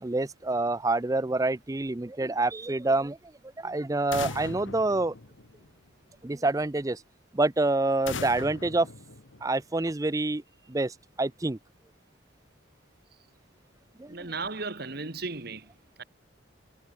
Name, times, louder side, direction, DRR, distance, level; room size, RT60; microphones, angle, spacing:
voice 1, 0.0-3.2 3.6-5.1 6.2-7.0 7.3-8.9 9.4-10.4 10.7-11.6 14.0-14.2, right 2 dB, 15° right, 0.4 m, -27 dB
sound 1, 4.1-5.9 8.1-9.8, left 4 dB, 75° left, 1.3 m, -39 dB
voice 2, 14.1-15.7 16.0-16.1, right 3 dB, 50° right, 1.9 m, -35 dB
head